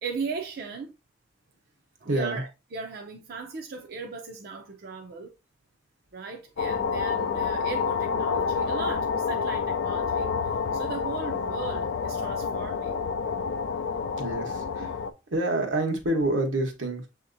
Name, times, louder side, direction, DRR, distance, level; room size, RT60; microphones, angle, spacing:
voice 1, 0.0-1.0 2.0-5.3 6.1-13.0 14.5-14.9, right 4 dB, 55° right, 0.5 m, -38 dB
voice 2, 2.1-2.4 14.2-15.0 15.3-17.1, right 2 dB, 90° right, 1.2 m, -27 dB
sound 1, 6.6-15.1, left 5 dB, 75° left, 0.4 m, -28 dB
6.7 x 2.8 x 2.5 m
head